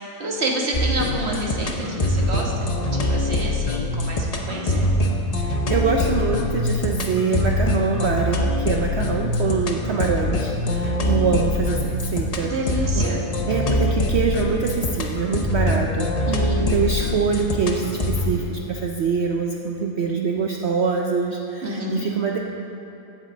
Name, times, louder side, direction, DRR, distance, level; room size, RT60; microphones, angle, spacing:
voice 1, 0.2-4.9 12.4-13.3 16.3-16.7 21.6-22.0, right 1 dB, 40° right, -1 dB, 1.5 m, -28 dB
sound 1, 0.7-18.3, left 1 dB, 50° left, 0.4 m, -23 dB
voice 2, 5.3-12.5 13.0-13.1 13.5-16.1 16.6-22.4, right 5 dB, 70° right, 1 dB, 0.6 m, -24 dB
8.1 x 7.9 x 7.1 m, 2.9 s
omnidirectional pair, 1.8 m